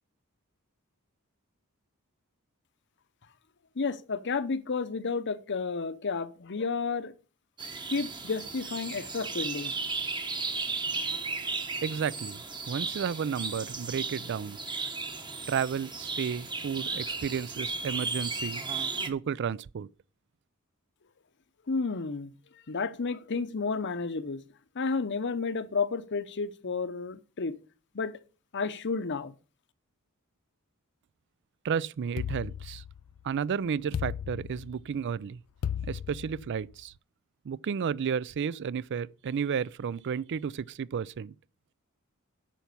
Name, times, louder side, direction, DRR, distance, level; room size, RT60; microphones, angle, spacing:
voice 1, 3.8-7.1 7.9-9.7 21.7-22.3 22.7-24.4 24.7-27.5 27.9-28.1 28.5-29.3, left 4 dB, 55° left, 0.8 m, -31 dB
sound 1, 7.6-19.1, right 4 dB, 20° right, 1.1 m, -35 dB
voice 2, 11.8-14.6 15.5-18.6 19.0-19.9 31.6-32.8 33.2-35.4 35.9-36.9 37.5-41.3, right 7 dB, 55° right, 0.4 m, -32 dB
sound 2, 32.2-33.3 33.9-35.0 35.6-36.7, left 8 dB, 90° left, 0.4 m, -35 dB
9.1 x 5.8 x 6.8 m
head